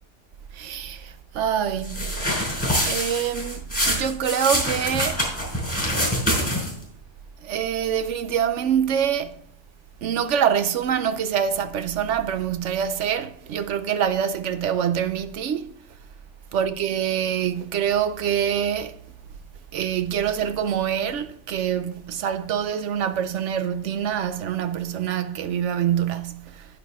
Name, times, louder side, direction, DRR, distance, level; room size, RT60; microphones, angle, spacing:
voice 1, 0.5-2.0 2.8-5.2 7.4-9.3 10.0-15.7 16.5-19.0 19.7-26.7, right 9 dB, 80° right, 1.0 m, -25 dB
sound 1, 1.8-6.8, equal, 5° left, 5.1 m, -25 dB
10.5 x 9.7 x 3.6 m
omnidirectional pair, 1.2 m